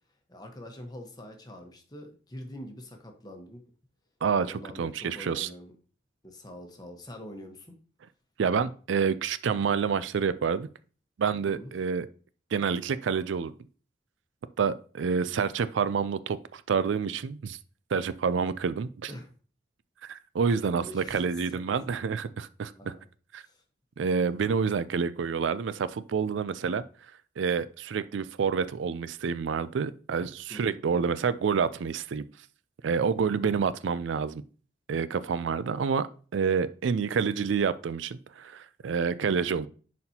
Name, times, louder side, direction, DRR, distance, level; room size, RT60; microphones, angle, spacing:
voice 1, 0.3-3.6 4.4-5.7 6.2-7.7 11.4-11.7 19.1-19.3 20.5-21.6 22.7-23.0 23.4-23.6 30.5-30.8, left 1 dB, 20° left, 3 dB, 1.1 m, -45 dB
voice 2, 4.2-5.5 8.4-10.7 11.2-12.1 12.5-13.5 14.6-17.6 17.9-19.1 20.0-22.7 23.3-23.4 24.0-26.8 27.4-32.2 32.8-34.4 34.9-36.1 36.3-39.7, right 6 dB, 85° right, 15 dB, 0.4 m, -28 dB
10.5 x 4.2 x 2.8 m, 0.39 s
head